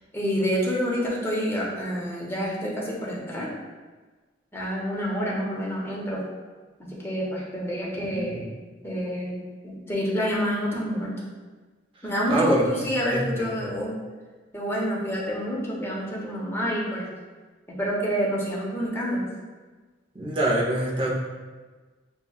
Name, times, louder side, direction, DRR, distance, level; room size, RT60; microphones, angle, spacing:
voice 1, 0.1-3.5 4.5-6.2 6.8-8.4 8.8-11.3 12.0-13.9 14.5-17.1 17.7-19.3, equal, 15° left, -5 dB, 0.8 m, -28 dB
voice 2, 7.9-8.4 9.0-9.2 12.3-12.7 13.1-13.7 20.1-21.1, right 1 dB, 25° right, -4 dB, 0.7 m, -26 dB
7.0 x 2.3 x 2.3 m, 1.3 s
head